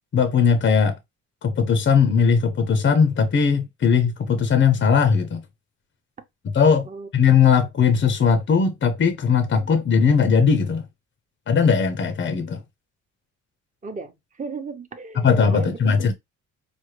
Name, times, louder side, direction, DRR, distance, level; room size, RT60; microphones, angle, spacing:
voice 1, 0.1-1.0 1.4-5.4 6.5-6.9 7.1-10.8 11.5-12.6 15.2-16.1, left 6 dB, 40° left, 0.6 m, -19 dB
voice 2, 13.8-15.9, right 4 dB, 25° right, 0.8 m, -36 dB
4.8 x 2.1 x 3.1 m
cardioid pair, 90°, 30 cm